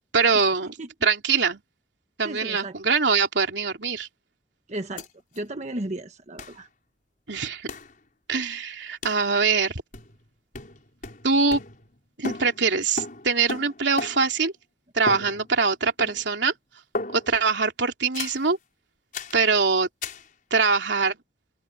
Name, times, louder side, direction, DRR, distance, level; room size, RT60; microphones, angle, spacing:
voice 1, 0.1-0.7 1.0-1.6 2.2-4.1 7.3-7.7 8.3-9.8 11.2-11.6 12.2-14.5 14.9-16.5 17.1-18.6 19.3-19.9 20.5-21.2, right 5 dB, 85° right, 3.1 m, -23 dB
voice 2, 2.2-2.7 4.7-5.1 5.3-6.7, right 1 dB, 40° right, 1.4 m, -34 dB
sound 1, 5.0-5.1 5.3-5.4 6.4-6.6 7.7-7.9 9.0-9.3 9.9-10.3 10.5-12.0 12.2-14.4 15.1-15.7 16.0-16.4 16.9-17.5 18.1-18.5 19.1-19.4 20.0-20.3, left 3 dB, 50° left, 4.9 m, -36 dB
open air
head